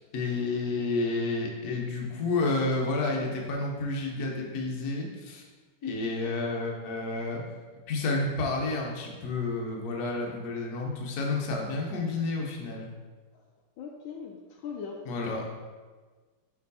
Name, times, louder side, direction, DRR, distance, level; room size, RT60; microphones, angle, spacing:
voice 1, 0.1-5.4 5.8-7.4 7.9-12.9 15.0-15.5, left 3 dB, 55° left, 0 dB, 1.3 m, -30 dB
voice 2, 13.8-15.0 15.2-15.5, left 6 dB, 75° left, 1 dB, 1.3 m, -40 dB
5.5 x 5.0 x 4.1 m, 1.4 s
omnidirectional pair, 2.3 m